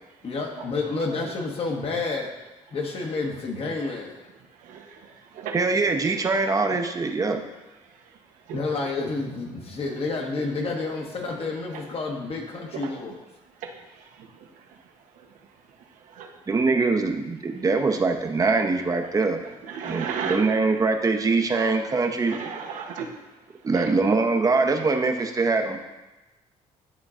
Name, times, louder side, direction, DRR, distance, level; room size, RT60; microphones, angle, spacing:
voice 1, 0.2-2.3 2.7-4.2 8.5-13.1, left 3 dB, 50° left, 0 dB, 1.3 m, -29 dB
voice 2, 4.6-5.1 5.3-5.6 8.5-8.9 11.7-11.8 12.7-13.1 13.6-13.7 16.1-16.3 19.0-19.1 19.6-20.5 21.5-21.7 22.3-23.1 23.7-23.9, right 6 dB, 85° right, 2 dB, 0.9 m, -34 dB
voice 3, 5.5-7.4 16.5-19.4 19.8-22.4 23.6-25.8, right 3 dB, 25° right, 4 dB, 0.7 m, -23 dB
11.5 x 3.8 x 2.5 m, 1.1 s
cardioid pair, 95°, 13 cm